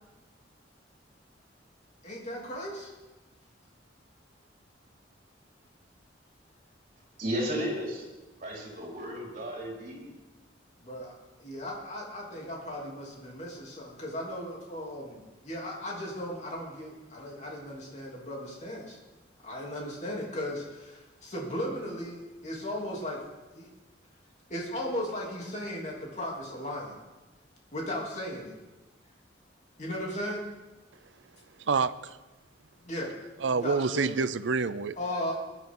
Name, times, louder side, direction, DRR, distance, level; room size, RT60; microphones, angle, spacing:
voice 1, 2.0-2.9 10.8-19.0 19.4-23.2 23.5-23.7 24.5-27.0 27.7-28.5 29.8-30.5 32.8-33.1 33.5-34.1 35.0-35.3, left 1 dB, 40° left, -3 dB, 3.1 m, -36 dB
voice 2, 7.2-8.1 8.4-10.1, equal, 45° right, -3 dB, 4.7 m, -33 dB
voice 3, 31.6-32.2 33.4-35.0, right 4 dB, 70° right, 15 dB, 0.5 m, -27 dB
20.5 x 11.0 x 3.9 m, 1.1 s
head